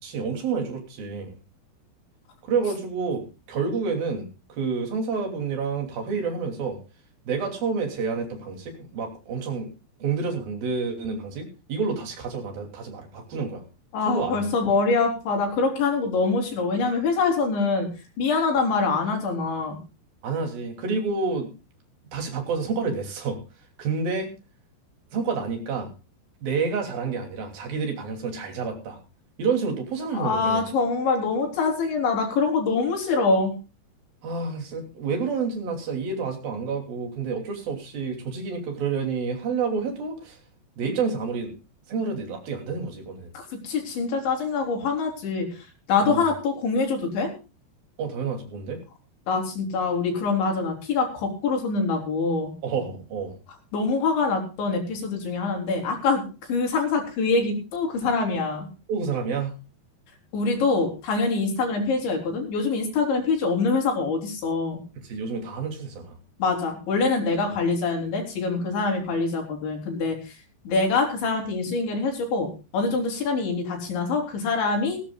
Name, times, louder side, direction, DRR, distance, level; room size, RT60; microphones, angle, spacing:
voice 1, 0.0-1.4 2.4-6.8 7.3-9.7 10.0-13.6 14.0-14.4 20.2-21.5 22.1-23.4 23.8-24.3 25.1-25.9 26.4-29.0 29.4-30.6 34.2-40.4 40.8-41.5 41.9-43.3 46.0-46.2 48.0-48.8 52.6-53.4 58.9-59.5 65.0-66.2, right 5 dB, 55° right, 3 dB, 4.6 m, -29 dB
voice 2, 13.9-17.9 18.2-19.8 30.1-33.5 43.3-45.6 45.9-47.3 49.3-52.5 53.7-58.7 60.3-64.8 66.4-70.2 70.7-75.0, left 4 dB, 90° left, 1 dB, 6.2 m, -24 dB
18.5 x 16.5 x 2.4 m, 0.33 s
omnidirectional pair, 5.1 m